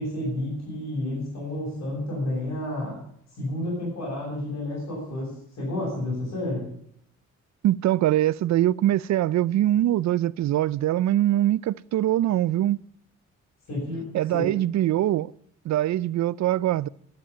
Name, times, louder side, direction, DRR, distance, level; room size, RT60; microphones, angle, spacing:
voice 1, 0.0-3.0 3.4-6.7 13.7-14.0 14.3-14.5, left 1 dB, 65° left, 7.4 m, -30 dB
voice 2, 7.6-12.8 14.1-15.3 15.6-16.9, right 13 dB, 65° right, 0.5 m, -23 dB
11.5 x 10.5 x 8.6 m
wide cardioid pair, 160°, 30 cm